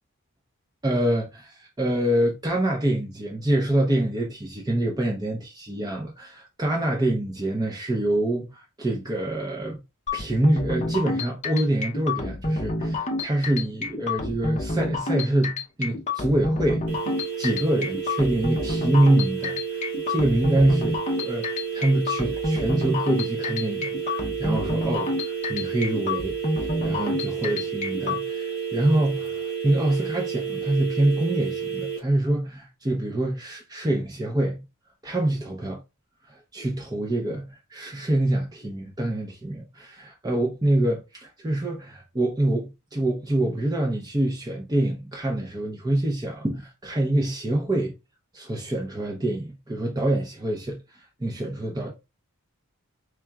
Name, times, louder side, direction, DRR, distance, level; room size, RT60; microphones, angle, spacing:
voice 1, 0.8-9.8 10.1-16.8 17.4-34.6 35.0-35.8 36.3-47.9 48.3-51.9, right 1 dB, 15° right, 0.6 m, -26 dB
sound 1, 10.1-28.2, left 2 dB, 30° left, 0.6 m, -28 dB
sound 2, 16.9-32.0, right 8 dB, 75° right, 1.3 m, -31 dB
4.4 x 2.9 x 2.3 m
head